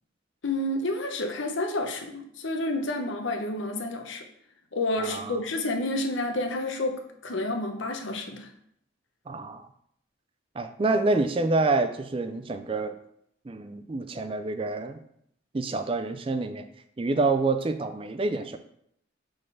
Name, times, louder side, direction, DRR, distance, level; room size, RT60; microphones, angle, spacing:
voice 1, 0.4-4.2 4.7-8.5, left 2 dB, 75° left, 4 dB, 1.0 m, -30 dB
voice 2, 5.0-5.4 9.3-9.7 10.6-12.9 13.5-15.0 15.5-16.7 17.0-18.6, right 3 dB, 25° right, 9 dB, 0.4 m, -27 dB
5.2 x 4.2 x 5.6 m, 0.71 s
head